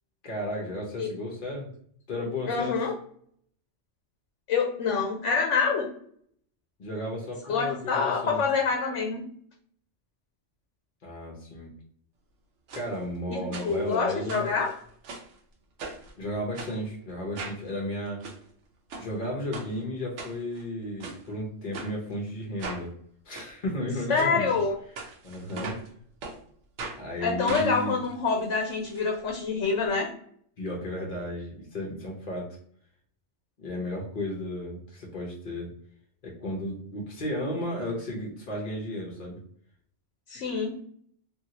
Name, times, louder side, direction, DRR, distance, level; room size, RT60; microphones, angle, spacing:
voice 1, 0.2-1.7 2.1-2.8 6.8-8.4 11.0-11.7 12.7-14.6 16.2-18.2 19.0-22.9 23.2-24.5 25.2-25.8 27.0-28.0 30.6-32.5 33.6-35.7 36.2-39.4, left 1 dB, 50° left, -2 dB, 0.8 m, -34 dB
voice 2, 2.5-3.0 4.5-5.9 7.5-9.2 13.3-14.8 24.1-24.8 27.2-30.1 40.3-40.8, left 5 dB, 90° left, 1 dB, 0.9 m, -26 dB
sound 1, 12.7-12.9 13.5-14.0 14.3-15.3 15.8-16.1 16.5-16.7 17.3-17.6 18.1-18.4 18.9-19.1 19.5-19.7 20.2-20.6 21.0-21.2 21.7-21.9 22.6-22.8 23.3-23.5 24.1-24.3 25.0-25.9 26.2-26.4 26.8-27.0 27.5-29.0 29.3-29.4 29.6-29.7, right 3 dB, 90° right, 1.0 m, -39 dB
2.7 x 2.7 x 2.8 m, 0.64 s
omnidirectional pair, 1.2 m